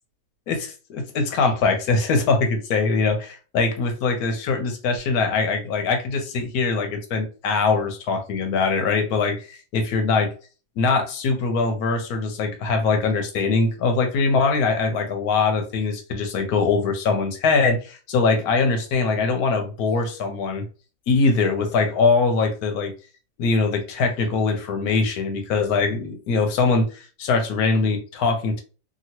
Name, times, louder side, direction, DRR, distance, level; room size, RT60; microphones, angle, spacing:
voice 1, 0.5-10.3 10.8-20.6 21.1-22.9 23.4-28.6, left 4 dB, 85° left, 5 dB, 1.2 m, -22 dB
2.9 x 2.7 x 2.8 m, 0.36 s
omnidirectional pair, 1.6 m